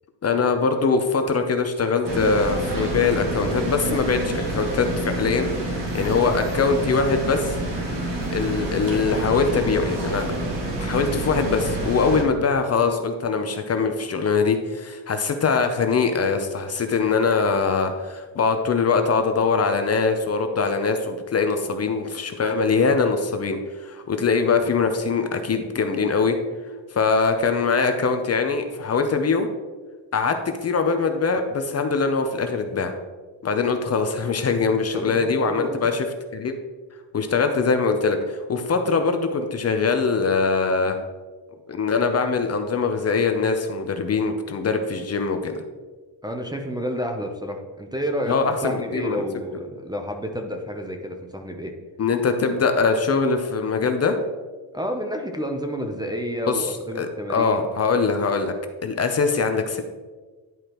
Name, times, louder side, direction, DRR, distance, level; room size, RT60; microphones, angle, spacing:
voice 1, 0.2-7.5 8.3-10.3 10.8-26.4 26.9-29.5 30.1-32.9 33.4-36.1 36.3-36.5 37.1-40.9 41.7-45.5 48.3-49.2 52.0-54.2 56.5-56.7 57.0-58.5 58.8-59.8, left 4 dB, 35° left, 6 dB, 0.7 m, -22 dB
sound 1, 2.0-12.2, right 1 dB, 45° right, 2.1 m, -28 dB
voice 2, 34.9-35.9 46.2-51.7 54.7-57.7, equal, 10° right, 3 dB, 0.6 m, -30 dB
10.5 x 4.8 x 3.0 m, 1.4 s
cardioid pair, 100°, 46 cm